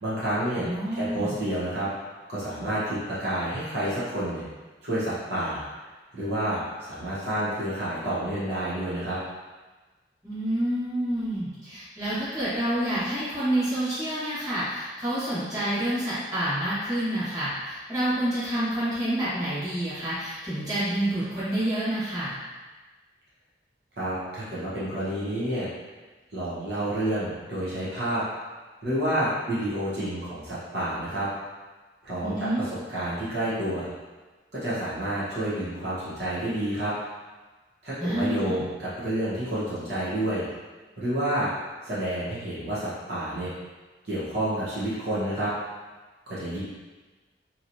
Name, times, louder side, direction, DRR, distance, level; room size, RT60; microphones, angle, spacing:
voice 1, 0.0-0.7 0.9-1.9 2.3-4.4 4.8-5.6 6.1-9.2 24.0-25.7 26.3-28.2 28.8-31.3 32.0-32.7 32.9-33.9 34.6-36.9 37.8-40.4 41.0-41.5 41.8-43.5 44.0-45.5 46.3-46.6, right 1 dB, 65° right, -10 dB, 0.9 m, -29 dB
voice 2, 0.6-1.3 10.2-22.3 32.2-32.6 38.0-38.6, right 1 dB, 20° right, -13 dB, 1.4 m, -28 dB
2.9 x 2.8 x 2.6 m, 1.3 s
head